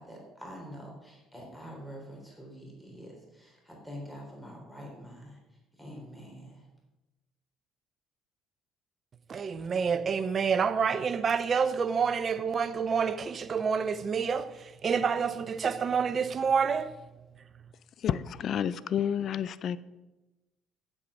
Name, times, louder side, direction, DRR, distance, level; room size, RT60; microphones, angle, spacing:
voice 1, 0.0-5.4 5.8-6.6, equal, 5° left, 3.7 m, -45 dB
voice 2, 9.3-14.5 14.8-16.9, right 6 dB, 40° right, 0.7 m, -28 dB
voice 3, 18.0-19.8, left 9 dB, 55° left, 0.5 m, -30 dB
8.5 x 7.9 x 6.2 m
supercardioid pair, 85°, 0 cm